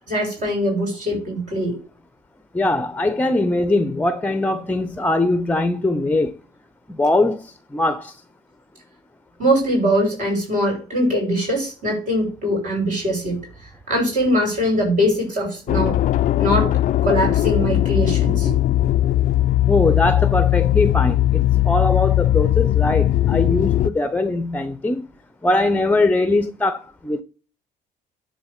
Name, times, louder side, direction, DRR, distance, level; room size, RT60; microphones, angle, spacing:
voice 1, 0.1-1.7 9.4-16.0 16.4-16.7 17.0-18.5, equal, 50° right, 5.3 m, -22 dB
voice 2, 2.5-6.3 6.9-8.1 19.7-25.1 25.4-27.2, left 2 dB, 10° left, 0.7 m, -21 dB
sound 1, 15.7-23.9, left 14 dB, 50° left, 0.4 m, -19 dB
10.0 x 3.9 x 6.6 m
cardioid pair, 110°, 17 cm